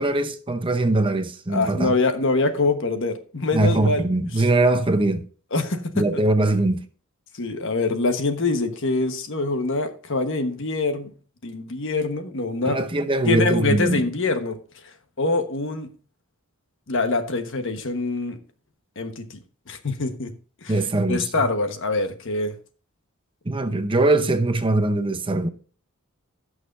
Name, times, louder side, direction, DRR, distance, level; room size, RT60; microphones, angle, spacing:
voice 1, 0.0-1.9 3.5-5.2 5.9-6.8 12.6-14.0 20.7-21.3 23.5-25.5, right 2 dB, 25° right, 0.7 m, -21 dB
voice 2, 1.5-4.0 5.5-6.2 7.4-11.1 11.4-12.8 13.2-14.6 15.2-15.9 16.9-18.4 19.0-19.4 19.7-20.3 20.6-20.8 21.1-22.5, left 3 dB, 60° left, 1.2 m, -24 dB
16.5 x 6.4 x 2.5 m
head